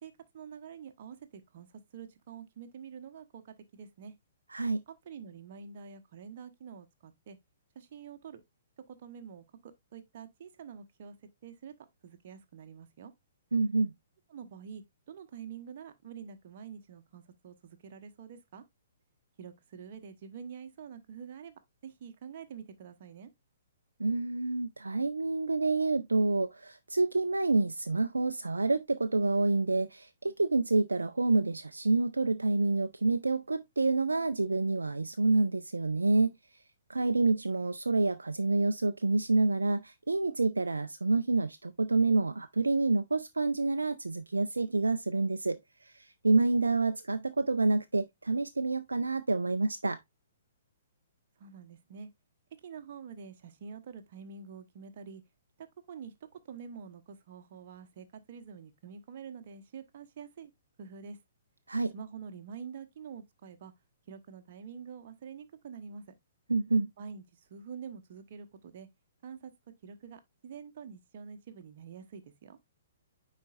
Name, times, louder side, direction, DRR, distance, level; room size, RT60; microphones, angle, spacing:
voice 1, 0.0-4.1 4.9-7.4 7.7-8.4 8.9-11.1 11.4-11.7 12.0-13.1 14.3-18.6 19.4-23.3 51.4-52.1 52.6-55.2 55.6-60.5 60.8-61.2 61.9-63.7 64.1-66.0 67.0-68.9 69.2-69.5 69.8-72.6, right 6 dB, 45° right, 1.1 m, -47 dB
voice 2, 4.5-4.8 13.5-13.9 24.0-36.3 36.9-50.0 61.7-61.9 66.5-66.9, right 3 dB, 75° right, 0.4 m, -28 dB
9.6 x 4.3 x 2.4 m
figure-of-eight pair, 120°, 0 cm